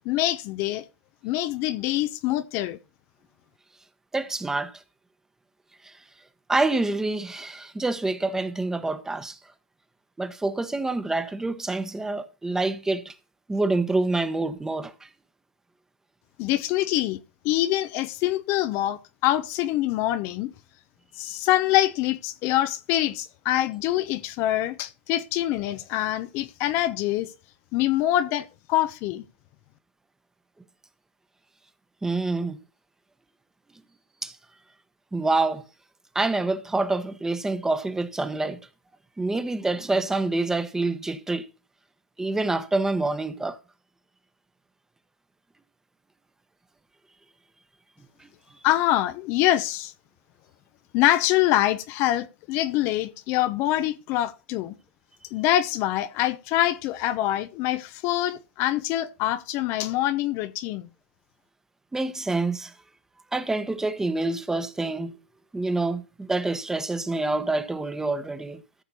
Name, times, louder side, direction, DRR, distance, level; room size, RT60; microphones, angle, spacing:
voice 1, 0.0-0.8 1.2-2.8 16.4-17.2 17.4-20.5 21.2-27.3 27.7-29.2 48.6-49.9 50.9-54.7 55.3-60.9, left 14 dB, 45° left, 0.8 m, -25 dB
voice 2, 4.1-4.8 5.8-5.9 6.5-9.4 10.2-13.1 13.5-15.1 32.0-32.6 34.2-34.4 35.1-35.6 36.1-38.6 39.2-41.5 42.2-43.6 48.2-48.3 61.9-62.7 63.3-65.2 65.5-68.6, right 2 dB, 10° right, 1.1 m, -27 dB
14.0 x 6.7 x 4.3 m
hypercardioid pair, 125°, 6 cm